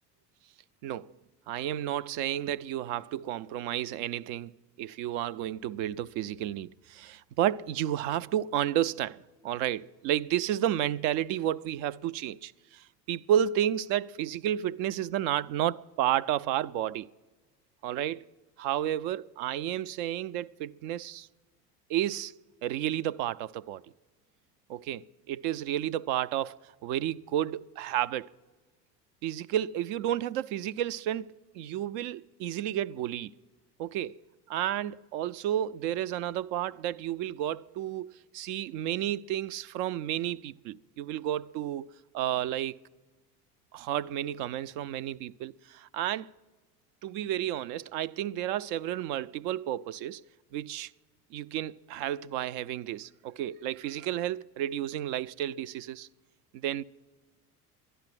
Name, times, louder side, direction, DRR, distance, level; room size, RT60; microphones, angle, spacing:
voice 1, 0.8-1.1 1.5-4.5 4.8-17.1 17.8-18.3 18.6-21.3 21.9-22.3 22.6-23.8 24.7-28.3 29.2-33.3 33.8-34.2 34.5-42.8 43.7-46.3 47.0-50.2 50.5-50.9 51.3-56.1 56.5-56.8, right 11 dB, 50° right, 0.5 m, -31 dB
11.5 x 11.0 x 7.6 m
hypercardioid pair, 70°, 47 cm